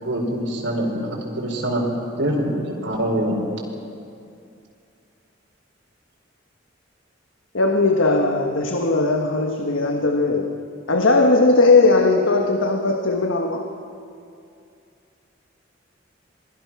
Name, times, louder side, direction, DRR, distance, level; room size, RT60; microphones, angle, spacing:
voice 1, 0.0-1.8 2.2-3.4, right 1 dB, 70° right, -2 dB, 4.5 m, -24 dB
voice 2, 7.5-10.5 10.9-13.7, left 3 dB, 90° left, 3 dB, 1.5 m, -18 dB
28.5 x 21.5 x 6.1 m, 2.5 s
head